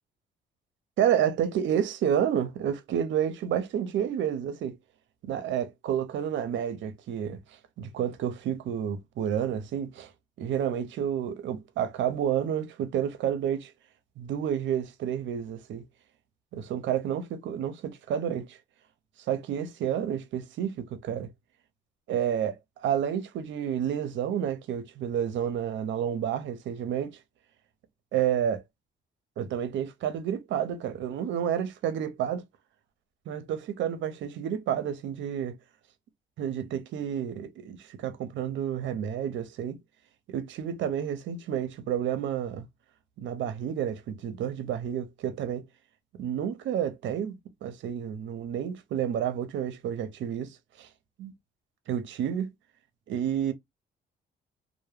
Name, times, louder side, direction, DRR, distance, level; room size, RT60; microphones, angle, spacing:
voice 1, 1.0-4.8 5.2-10.1 10.4-13.7 14.2-15.8 16.5-18.6 19.3-21.3 22.1-27.2 28.1-28.6 29.4-32.4 33.3-35.6 36.4-39.8 40.3-42.7 43.2-45.7 46.1-50.9 51.2-51.3 51.9-52.5 53.1-53.5, right 9 dB, 70° right, 0.5 m, -30 dB
2.1 x 2.0 x 3.1 m
cardioid pair, 90°, 20 cm